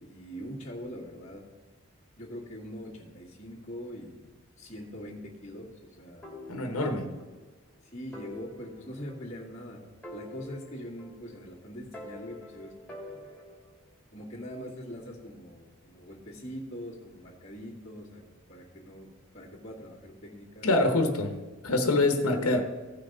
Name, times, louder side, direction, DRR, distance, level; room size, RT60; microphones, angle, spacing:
voice 1, 0.0-1.4 2.2-4.3 4.6-6.3 7.9-13.3 14.1-20.7, equal, 30° left, -11 dB, 1.9 m, -43 dB
sound 1, 6.2-7.4 7.7-7.8 8.1-9.6 10.0-11.5 11.9-13.8, left 2 dB, 5° left, 2.2 m, -46 dB
voice 2, 6.5-7.1 20.6-21.3 21.6-22.6, left 2 dB, 85° left, 5 dB, 1.0 m, -25 dB
15.5 x 5.7 x 3.9 m, 1.3 s
head